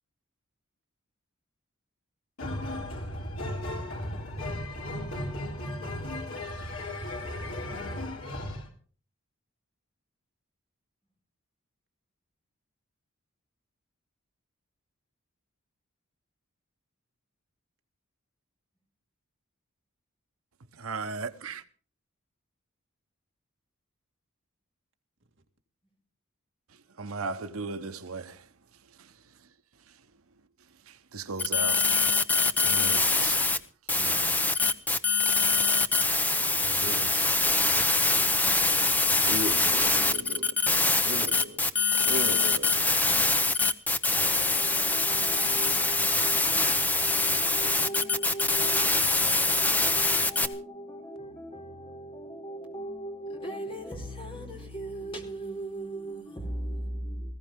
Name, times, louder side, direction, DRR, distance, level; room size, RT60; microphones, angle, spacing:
sound 1, 2.4-8.7, left 1 dB, 75° left, 3.8 m, -35 dB
voice 1, 20.7-21.6 27.0-28.5 29.0-29.1 30.9-32.2 32.6-33.5 33.9-34.6 36.6-37.5, right 4 dB, 80° right, 1.0 m, -37 dB
sound 2, 31.4-33.6 33.9-50.5, left 3 dB, 10° left, 0.8 m, -24 dB
voice 2, 39.3-40.5 41.1-43.3, equal, 60° right, 2.1 m, -37 dB
voice 3, 44.1-57.3, right 1 dB, 25° left, 4.4 m, -39 dB
19.5 x 15.5 x 3.7 m
head